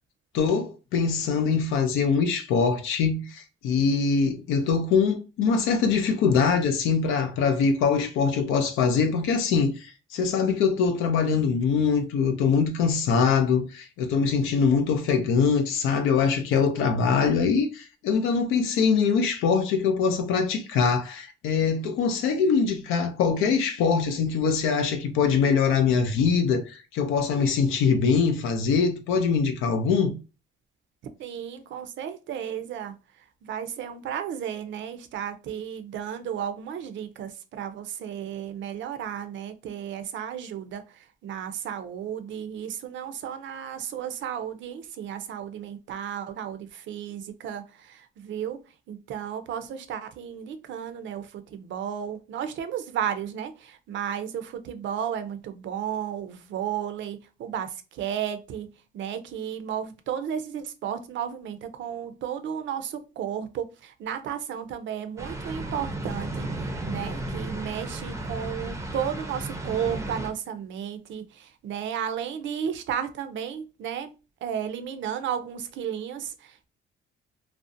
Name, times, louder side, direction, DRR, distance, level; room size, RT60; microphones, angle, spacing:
voice 1, 0.3-30.1, left 5 dB, 90° left, 0.4 m, -23 dB
voice 2, 31.2-32.9 33.4-48.6 48.9-58.7 58.9-74.1 74.4-76.7, right 9 dB, 70° right, 0.5 m, -33 dB
sound 1, 65.2-70.3, right 1 dB, 15° right, 0.5 m, -34 dB
2.5 x 2.0 x 2.5 m
cardioid pair, 90°, 20 cm